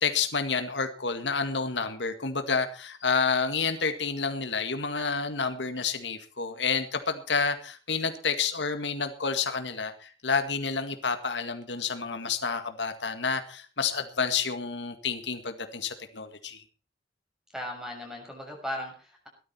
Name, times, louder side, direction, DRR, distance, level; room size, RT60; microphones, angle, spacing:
voice 1, 0.0-16.6, left 5 dB, 85° left, 8 dB, 1.9 m, -29 dB
voice 2, 17.5-19.3, left 1 dB, 5° right, 1 dB, 6.6 m, -37 dB
17.5 x 13.0 x 4.4 m, 0.38 s
head